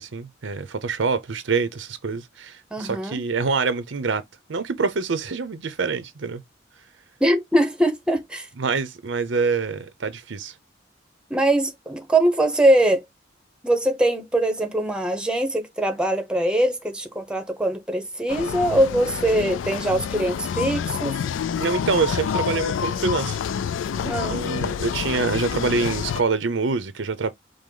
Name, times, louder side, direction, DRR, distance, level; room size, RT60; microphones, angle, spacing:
voice 1, 0.0-4.2 4.5-6.4 8.6-10.5 21.6-23.4 24.0-27.3, right 4 dB, 80° right, 0.7 m, -25 dB
voice 2, 2.7-3.2 7.2-8.5 11.3-13.0 13.6-21.1 24.1-24.4, right 1 dB, 5° right, 0.7 m, -22 dB
sound 1, 18.3-26.2, left 7 dB, 85° left, 0.3 m, -28 dB
5.0 x 2.0 x 3.8 m
head